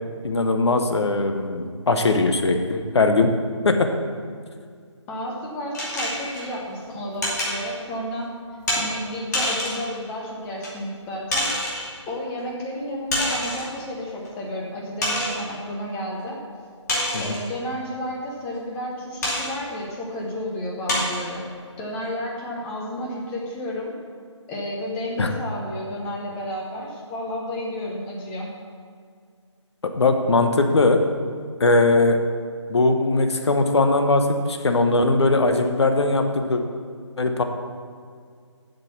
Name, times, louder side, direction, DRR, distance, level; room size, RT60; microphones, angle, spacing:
voice 1, 0.2-3.3 3.6-3.9 17.1-17.3 25.2-25.3 29.9-31.0 31.6-32.2 32.7-36.6 37.2-37.4, left 2 dB, 60° left, 6 dB, 1.1 m, -20 dB
voice 2, 5.1-8.3 8.7-11.5 12.1-16.4 17.2-21.4 21.8-24.0 24.5-28.5, left 1 dB, 10° left, -3 dB, 0.8 m, -31 dB
sound 1, 5.7-6.5 7.2-7.6 8.7-8.9 9.3-9.9 10.6-10.7 11.3-11.9 13.1-13.7 14.3-14.4 15.0-15.4 16.9-17.5 19.2-19.5 20.2-20.3 20.9-21.3, left 1 dB, 35° left, 2.6 m, -26 dB
8.1 x 6.8 x 7.1 m, 2.1 s
figure-of-eight pair, 165°, 16 cm